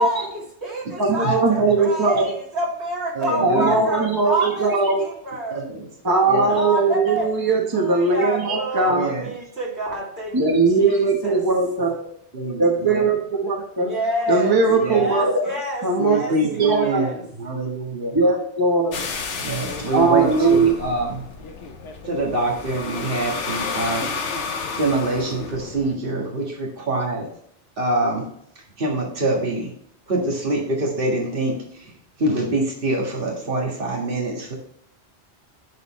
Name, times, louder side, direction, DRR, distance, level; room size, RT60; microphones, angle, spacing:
voice 1, 0.0-4.7 5.0-5.6 6.5-11.4 13.8-17.2, right 1 dB, 70° right, -4 dB, 3.0 m, -28 dB
voice 2, 1.0-2.3 3.4-5.0 6.0-9.1 10.3-12.1 12.6-14.0 14.3-15.5 15.8-17.0 18.1-19.0 19.9-20.8, right 3 dB, 20° right, 0 dB, 1.2 m, -19 dB
voice 3, 3.2-3.8 5.5-5.9 6.3-6.6 8.9-9.3 11.8-11.9 12.3-13.1 14.7-15.0 16.0-18.2 19.4-21.2 22.1-24.1 24.8-27.3 27.8-28.3 28.8-29.7 30.1-31.5 31.8-31.9 32.2-34.5, right 2 dB, 50° right, -2 dB, 1.9 m, -25 dB
sound 1, 18.9-25.9, left 4 dB, 85° left, 1.1 m, -31 dB
10.5 x 4.1 x 3.1 m, 0.69 s
omnidirectional pair, 1.2 m